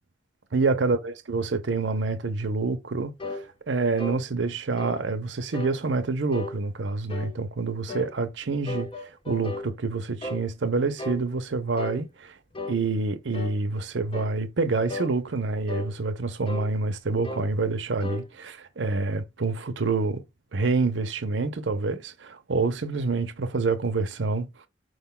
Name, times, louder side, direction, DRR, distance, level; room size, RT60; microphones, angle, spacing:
voice 1, 0.5-12.3 12.7-20.2 20.5-24.5, right 3 dB, 80° right, 0.7 m, -27 dB
sound 1, 3.2-3.4 4.0-4.2 4.8-5.0 5.5-5.8 6.3-6.6 7.1-7.4 7.9-8.1 8.7-9.7 10.2-10.5 11.0-11.2 11.8-12.0 12.5-12.8 13.3-13.6 14.1-14.4 14.9-15.1 15.7-15.9 16.5-16.7 17.2-17.5 18.0-18.2, left 2 dB, 30° left, 0.6 m, -35 dB
4.9 x 2.3 x 3.7 m
head